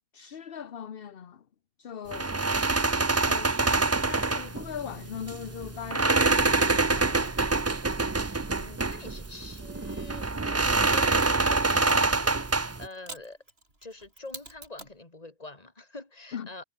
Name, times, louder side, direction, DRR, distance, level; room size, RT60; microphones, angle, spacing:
voice 1, 0.1-1.5 1.8-2.4 3.2-7.4 16.3-16.5, left 8 dB, 65° left, 1.1 m, -40 dB
sound 1, 2.1-12.9, right 3 dB, 20° right, 0.5 m, -26 dB
Mechanisms, 6.6-10.5 11.2-15.0, right 2 dB, 75° right, 6.0 m, -50 dB
voice 2, 8.5-13.4 13.8-16.6, left 2 dB, 40° left, 2.7 m, -46 dB
omnidirectional pair, 1.0 m